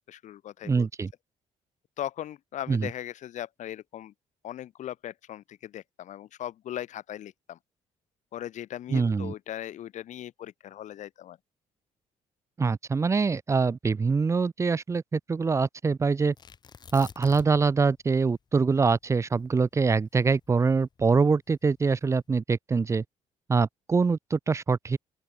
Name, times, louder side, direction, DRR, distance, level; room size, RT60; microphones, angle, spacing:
voice 1, 0.1-0.9 2.0-4.1 4.4-7.6 8.3-11.4, left 11 dB, 65° left, 2.7 m, -38 dB
voice 2, 0.6-1.1 2.7-2.9 8.9-9.3 12.6-16.3 16.9-23.0 23.5-25.0, right 4 dB, 20° right, 0.6 m, -24 dB
Tearing, 16.4-17.8 18.1-18.2 18.7-21.1 21.8-22.2, left 6 dB, 30° left, 1.3 m, -47 dB
open air
cardioid pair, 130°, 13 cm